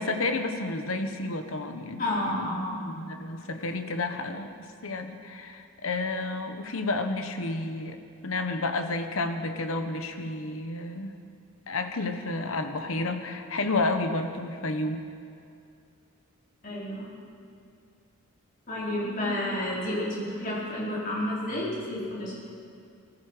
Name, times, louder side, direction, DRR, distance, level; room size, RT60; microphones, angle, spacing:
voice 1, 0.0-2.0 2.3-8.0 8.2-11.2 11.7-15.0, left 2 dB, 70° left, 7 dB, 1.2 m, -31 dB
voice 2, 2.0-2.8 16.6-17.1 18.7-22.3, left 1 dB, 40° left, -7 dB, 5.1 m, -30 dB
19.5 x 13.5 x 5.0 m, 2.4 s
head